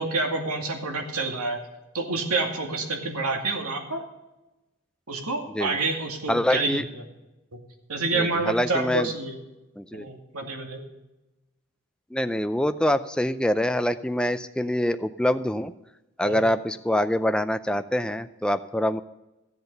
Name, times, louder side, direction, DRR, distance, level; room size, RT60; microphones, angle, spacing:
voice 1, 0.0-1.6 1.9-4.1 5.1-7.0 7.5-7.6 7.9-9.4 9.9-10.8 16.2-16.4, right 3 dB, 85° right, 3 dB, 2.3 m, -28 dB
voice 2, 6.3-6.8 8.1-9.1 9.8-10.1 12.1-15.7 16.2-19.0, left 1 dB, 5° left, 10 dB, 0.4 m, -25 dB
15.0 x 8.0 x 5.4 m, 1.0 s
head